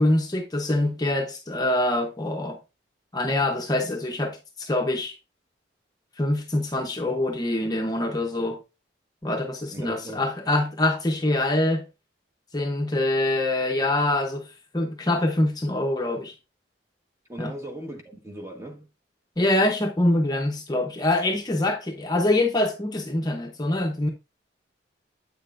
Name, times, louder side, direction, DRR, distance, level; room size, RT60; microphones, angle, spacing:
voice 1, 0.0-2.6 3.1-5.2 6.2-8.6 9.2-11.8 12.5-16.3 17.4-17.5 19.4-24.1, left 1 dB, 20° left, 0.8 m, -24 dB
voice 2, 9.7-10.3 17.3-18.9, right 1 dB, 15° right, 1.3 m, -39 dB
8.4 x 6.5 x 2.5 m
head